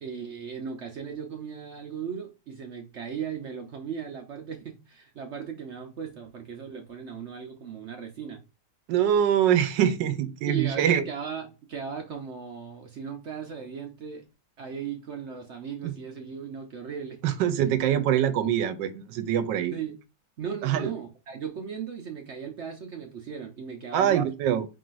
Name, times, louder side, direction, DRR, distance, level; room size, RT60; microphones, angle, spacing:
voice 1, 0.0-8.4 10.5-14.2 14.6-17.2 19.7-20.0 20.4-24.3, right 7 dB, 65° right, 0.7 m, -37 dB
voice 2, 8.9-11.0 15.8-15.9 17.2-19.7 20.6-20.9 23.9-24.7, right 10 dB, 85° right, 1.3 m, -24 dB
4.8 x 3.8 x 2.4 m
omnidirectional pair, 1.9 m